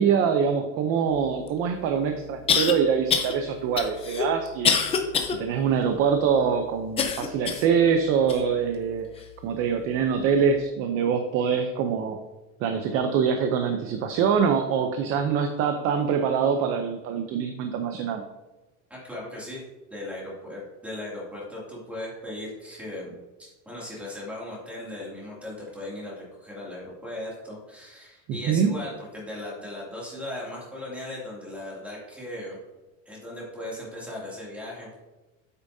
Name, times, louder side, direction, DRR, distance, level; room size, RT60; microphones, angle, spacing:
voice 1, 0.0-4.7 5.3-9.1 9.4-12.2 12.6-18.2 28.3-28.7, right 6 dB, 40° right, 6 dB, 0.6 m, -24 dB
sound 1, 1.5-1.6 2.5-2.7 3.1-3.3 3.8-5.4 5.8-5.9 7.0-7.7 8.3-8.4 9.2-9.3, left 6 dB, 15° left, 0.5 m, -24 dB
voice 2, 18.9-19.6 19.9-32.6 33.0-34.9, left 1 dB, 5° right, -5 dB, 2.4 m, -37 dB
8.8 x 8.2 x 2.7 m, 1.1 s
cardioid pair, 175°, 34 cm